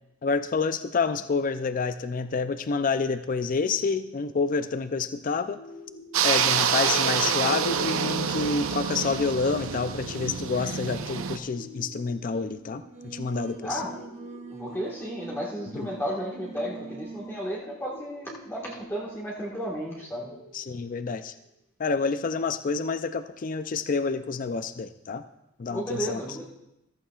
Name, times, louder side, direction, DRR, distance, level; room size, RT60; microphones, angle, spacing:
voice 1, 0.2-5.6 6.2-13.8 15.7-15.9 20.5-21.3 21.8-25.2 25.6-26.2, left 4 dB, 40° left, 11 dB, 0.4 m, -28 dB
sound 1, 5.5-21.5, left 1 dB, 70° left, 4.0 m, -50 dB
sound 2, 6.1-11.4, right 7 dB, 75° right, 0.7 m, -27 dB
Singing, 12.7-17.5, right 3 dB, 35° right, 0.8 m, -43 dB
voice 2, 13.6-13.9 14.5-20.3 25.7-26.5, equal, 10° left, -5 dB, 1.6 m, -33 dB
14.5 x 14.0 x 2.4 m, 0.87 s
head